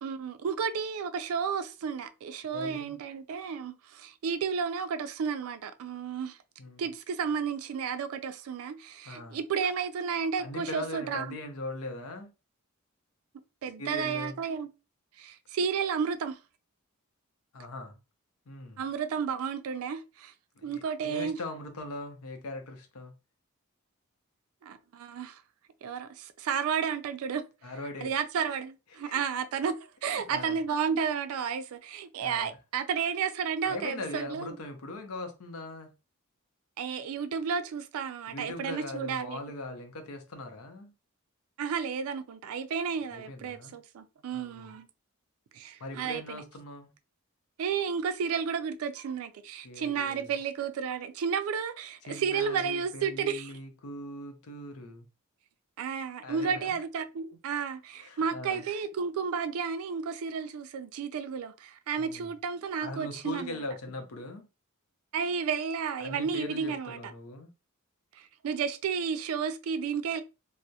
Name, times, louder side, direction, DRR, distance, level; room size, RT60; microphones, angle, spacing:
voice 1, 0.0-6.4 6.8-11.4 13.6-14.7 15.2-16.4 18.8-20.3 20.6-21.4 24.6-25.4 25.8-27.4 28.0-29.8 30.0-34.6 36.8-39.4 41.6-44.9 45.5-46.4 47.6-53.5 55.8-63.6 65.1-67.0 68.1-70.2, right 6 dB, 75° right, 0.3 m, -32 dB
voice 2, 2.5-3.0 6.6-6.9 9.0-9.4 10.4-12.3 13.8-14.4 17.5-18.0 18.5-18.8 20.6-23.1 27.6-28.1 29.0-29.2 30.0-30.6 32.2-32.6 33.7-35.9 38.3-40.9 43.1-43.7 44.3-44.7 45.8-46.9 49.6-50.3 52.1-55.1 56.2-56.8 58.0-58.6 62.0-62.3 62.8-64.5 66.0-67.5, left 2 dB, 85° left, 0.6 m, -40 dB
2.7 x 2.0 x 2.2 m
head